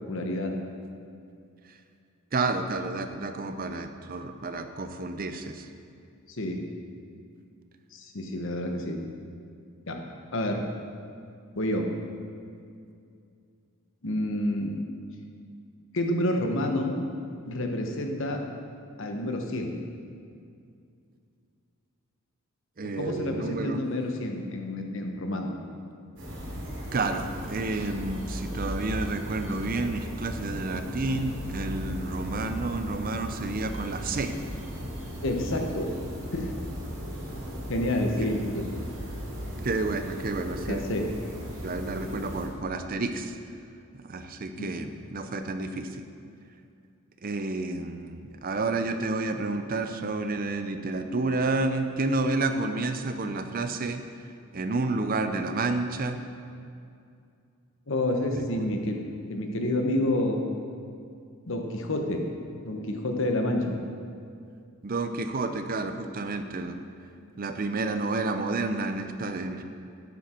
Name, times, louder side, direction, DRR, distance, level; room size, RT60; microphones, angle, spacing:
voice 1, 0.1-0.5 6.3-6.6 7.9-9.0 9.9-10.0 10.3-10.6 11.6-11.8 14.0-14.8 15.9-16.9 17.4-18.4 19.0-19.8 23.0-25.6 35.2-35.9 36.3-36.5 37.7-38.6 40.7-41.0 44.6-44.7 57.9-60.4 61.5-62.2 62.6-63.8, left 1 dB, 60° left, 3 dB, 1.1 m, -29 dB
voice 2, 2.3-5.7 22.8-23.8 26.9-34.3 39.6-40.9 41.6-43.4 43.9-46.1 47.2-54.0 54.5-56.2 58.6-58.7 64.8-66.8 67.4-69.6, right 3 dB, 40° right, 8 dB, 0.6 m, -30 dB
sound 1, 26.2-42.5, equal, 60° right, 2.9 m, -37 dB
11.5 x 8.1 x 4.5 m, 2.4 s
head